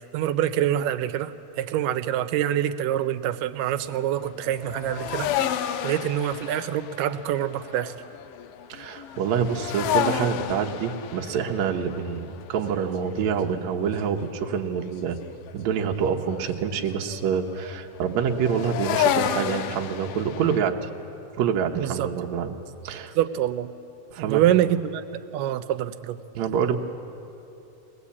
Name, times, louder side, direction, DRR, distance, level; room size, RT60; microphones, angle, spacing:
voice 1, 0.0-5.6 5.8-7.9 21.8-22.1 23.2-23.7 24.2-25.1 25.3-26.2, right 11 dB, 85° right, 12 dB, 2.3 m, -25 dB
sound 1, 3.6-14.9 15.2-20.6, left 10 dB, 90° left, 2.4 m, -31 dB
voice 2, 8.7-15.2 15.5-20.9 21.4-22.6 22.8-23.1 24.1-24.4 26.4-26.8, right 7 dB, 65° right, 2 dB, 2.1 m, -26 dB
22.5 x 20.0 x 8.4 m, 3.0 s
omnidirectional pair, 3.8 m